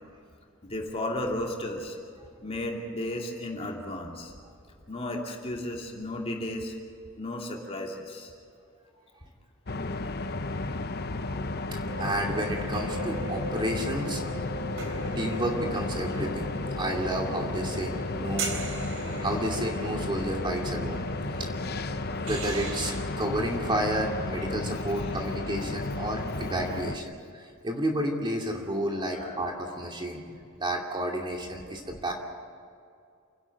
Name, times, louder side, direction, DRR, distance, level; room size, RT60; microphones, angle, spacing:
voice 1, 0.6-2.0 2.4-4.3 4.9-6.7 7.2-8.3 24.7-25.2 29.1-29.9, left 1 dB, 30° left, 0 dB, 2.9 m, -34 dB
sound 1, 9.7-27.0, left 2 dB, 50° left, 0.9 m, -33 dB
voice 2, 11.7-14.2 15.2-18.7 19.2-21.0 21.4-21.5 22.1-30.2 30.6-32.1, right 1 dB, 25° right, 1 dB, 2.7 m, -31 dB
sound 2, 11.9-23.0, right 2 dB, 70° right, 3.4 m, -38 dB
29.0 x 11.5 x 9.3 m, 2.3 s
head